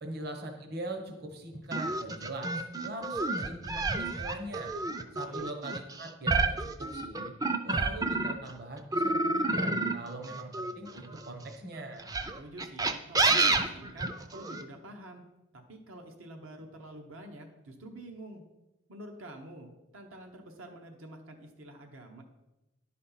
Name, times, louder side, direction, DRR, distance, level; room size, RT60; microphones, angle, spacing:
voice 1, 0.0-4.7 5.1-7.3 7.6-12.1, right 1 dB, 50° right, 4 dB, 1.0 m, -41 dB
sound 1, 1.7-8.5 8.9-11.3 12.0-14.6, right 3 dB, 15° right, 0.3 m, -29 dB
voice 2, 12.4-15.2 15.7-18.4 18.9-22.2, right 1 dB, 80° right, 4 dB, 1.0 m, -47 dB
10.5 x 4.3 x 5.6 m, 1.0 s
head